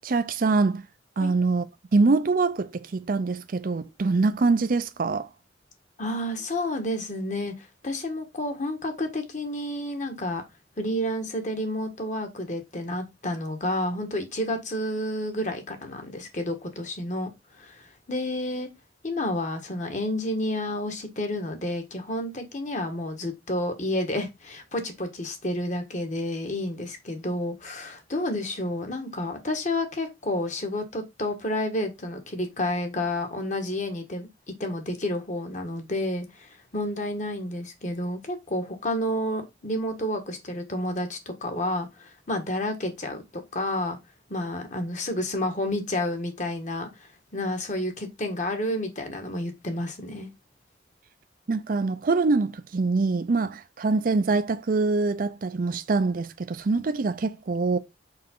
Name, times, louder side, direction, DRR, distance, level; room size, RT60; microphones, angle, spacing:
voice 1, 0.0-0.8 1.2-1.6 1.9-5.3 51.5-57.8, right 3 dB, 50° right, 0.5 m, -24 dB
voice 2, 6.0-10.4 10.8-17.3 17.6-18.7 19.0-34.3 34.6-43.2 43.5-44.0 44.3-46.9 47.3-50.3, left 1 dB, 40° left, 1.5 m, -30 dB
5.7 x 4.7 x 3.8 m
head